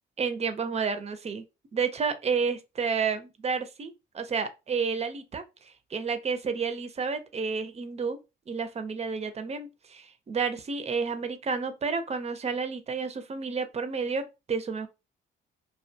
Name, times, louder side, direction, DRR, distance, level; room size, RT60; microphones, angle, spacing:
voice 1, 0.2-1.4 1.7-8.2 8.5-14.2 14.5-14.9, right 5 dB, 35° right, 0.5 m, -30 dB
2.4 x 2.1 x 2.6 m
cardioid pair, 90°, 20 cm